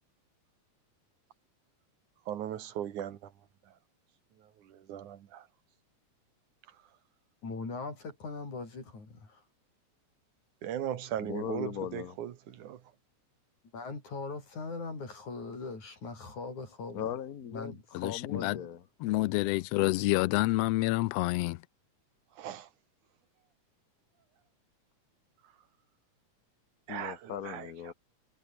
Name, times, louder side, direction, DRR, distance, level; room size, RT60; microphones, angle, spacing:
voice 1, 2.3-3.2 4.7-5.4 10.6-12.3 12.6-12.8 22.4-22.7 26.9-27.7, right 10 dB, 85° right, 3.1 m, -37 dB
voice 2, 7.4-9.4 13.7-17.0 17.5-18.7, left 3 dB, 75° left, 8.3 m, -40 dB
voice 3, 11.2-12.2 16.9-17.8 18.0-18.8 26.9-27.9, left 9 dB, 60° left, 0.9 m, -38 dB
voice 4, 17.9-18.6 19.0-21.6, left 19 dB, 90° left, 1.3 m, -28 dB
omnidirectional pair, 3.4 m